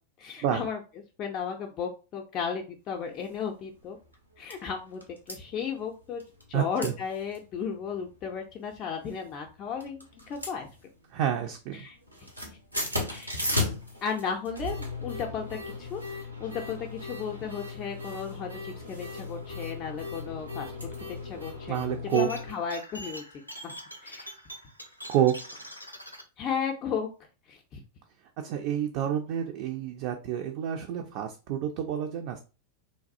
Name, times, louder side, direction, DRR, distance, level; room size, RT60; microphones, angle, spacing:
voice 1, 0.2-0.8 1.2-4.0 4.4-5.0 5.3-6.2 6.5-10.7 11.7-12.0 13.1-13.4 14.0-20.7 21.2-21.8 22.1-23.2 23.6-23.7 24.0-24.3 26.4-27.1 27.5-27.8, left 6 dB, 35° left, 2 dB, 0.4 m, -34 dB
sound 1, 3.2-3.4 3.8-3.9 4.1-4.6 5.0-5.4 6.2-6.5 6.8-6.9 7.3-7.4 7.8-8.2 8.9-9.5 9.8-11.2 11.4-11.8 12.0-22.5, left 2 dB, 90° right, 0.7 m, -36 dB
voice 2, 6.5-6.9 11.1-11.9 21.7-22.3 25.1-25.3 28.4-32.4, right 10 dB, 45° right, 4 dB, 0.4 m, -28 dB
sound 2, 22.1-26.2, equal, 90° left, 0.5 m, -43 dB
3.1 x 2.3 x 2.5 m, 0.32 s
figure-of-eight pair, 90°, 0 cm